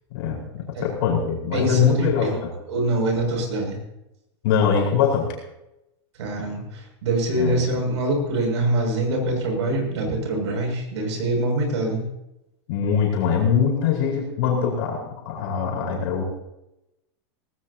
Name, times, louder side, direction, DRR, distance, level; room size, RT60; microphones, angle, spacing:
voice 1, 0.1-2.5 4.4-5.3 7.3-7.6 12.7-16.2, left 7 dB, 55° left, -3 dB, 4.8 m, -22 dB
voice 2, 1.5-2.4 2.7-3.8 6.2-12.0, right 1 dB, 85° right, 2 dB, 6.7 m, -24 dB
18.5 x 16.5 x 2.9 m, 0.89 s
supercardioid pair, 165°, 14 cm